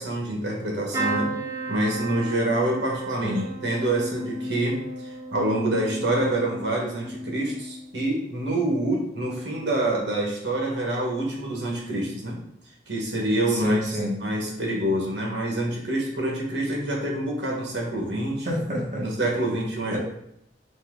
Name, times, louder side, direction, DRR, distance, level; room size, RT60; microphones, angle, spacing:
voice 1, 0.0-1.4 1.7-12.4 12.9-13.8 14.2-18.5 19.0-20.0, right 1 dB, 65° right, -1 dB, 1.4 m, -26 dB
sound 1, 0.9-8.8 9.2-9.8 11.0-11.2 11.4-11.5, right 1 dB, 15° right, 1.2 m, -35 dB
voice 2, 13.6-14.2 18.4-19.1 19.9-20.0, equal, 45° right, -3 dB, 1.3 m, -27 dB
4.3 x 3.1 x 3.7 m, 0.77 s
head